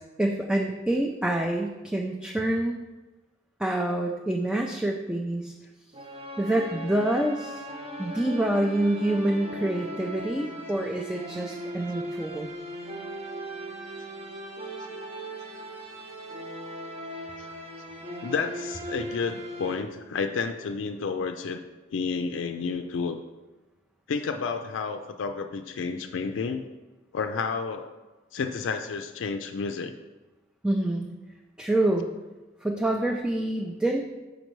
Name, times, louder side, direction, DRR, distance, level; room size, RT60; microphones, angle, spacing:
voice 1, 0.0-2.8 3.6-5.5 6.4-7.6 8.0-12.5 30.6-31.1 31.6-32.1 32.6-34.0, right 1 dB, 5° right, 0 dB, 0.3 m, -27 dB
sound 1, 5.9-19.7, equal, 35° right, 0.7 m, -38 dB
voice 2, 18.2-21.6 21.9-23.2 24.1-26.7 27.1-27.9 28.3-30.0, left 5 dB, 85° left, 6 dB, 0.4 m, -30 dB
6.5 x 5.0 x 3.1 m, 1.1 s
head